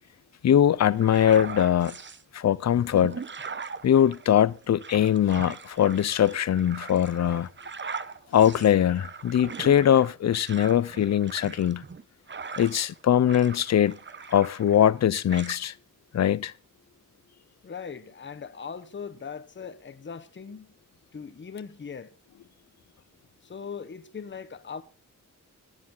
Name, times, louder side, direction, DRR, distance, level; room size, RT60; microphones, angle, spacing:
voice 1, 0.4-1.9 2.3-3.2 3.8-7.5 8.3-11.8 12.6-14.0 14.3-15.7 16.1-16.5, left 10 dB, 55° left, 0.6 m, -22 dB
sound 1, 0.9-2.2 2.7-13.0 13.2-15.0 15.3-15.6, right 5 dB, 35° right, 0.9 m, -40 dB
voice 2, 17.6-20.7 21.1-22.1 23.4-24.8, left 6 dB, 35° left, 1.0 m, -39 dB
15.0 x 11.0 x 3.8 m
wide cardioid pair, 145°, 32 cm